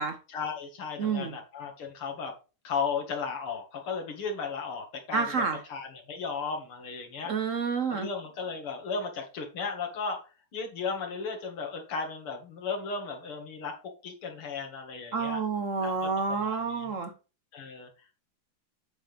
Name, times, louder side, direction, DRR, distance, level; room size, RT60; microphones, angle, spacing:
voice 1, 0.3-2.3 2.6-5.4 5.7-7.3 7.9-10.2 10.5-13.7 14.0-15.4 15.8-16.1 16.4-16.9 17.5-17.9, left 5 dB, 85° left, 3 dB, 2.8 m, -35 dB
voice 2, 1.0-1.4 5.1-5.6 7.3-8.1 15.1-17.1, right 5 dB, 55° right, 7 dB, 0.9 m, -29 dB
8.0 x 7.5 x 3.4 m, 0.32 s
omnidirectional pair, 2.3 m